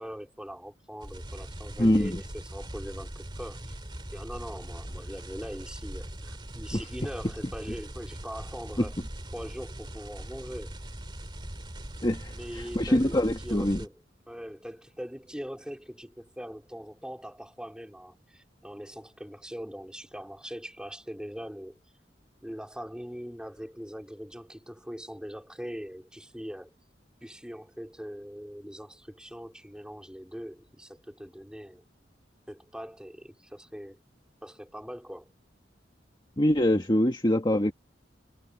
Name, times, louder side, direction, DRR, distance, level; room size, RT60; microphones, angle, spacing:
voice 1, 0.0-3.8 4.1-9.0 9.3-10.8 12.3-14.0 14.3-21.8 22.4-26.8 27.2-31.8 32.5-34.0 34.4-35.3, equal, 5° right, 4.2 m, -41 dB
sound 1, 1.0-13.9, right 1 dB, 25° right, 2.4 m, -41 dB
voice 2, 1.8-2.2 6.7-6.8 8.8-8.9 12.0-13.8 36.4-37.7, left 1 dB, 25° left, 1.7 m, -24 dB
head